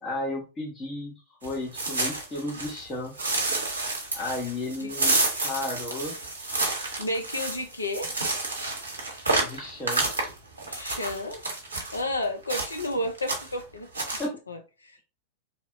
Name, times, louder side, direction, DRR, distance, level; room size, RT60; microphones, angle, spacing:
voice 1, 0.0-3.2 4.1-5.2 5.4-6.2 9.4-10.1 14.2-14.4, left 2 dB, 20° left, 0.6 m, -33 dB
sound 1, 1.4-2.8 3.2-12.0 12.5-12.9 13.2-13.6 13.9-14.2, right 2 dB, 75° right, 0.7 m, -29 dB
voice 2, 7.0-8.1 10.7-11.4 11.9-13.9 14.5-15.0, left 1 dB, 80° left, 0.4 m, -31 dB
2.9 x 2.0 x 2.4 m
figure-of-eight pair, 90°, 0 cm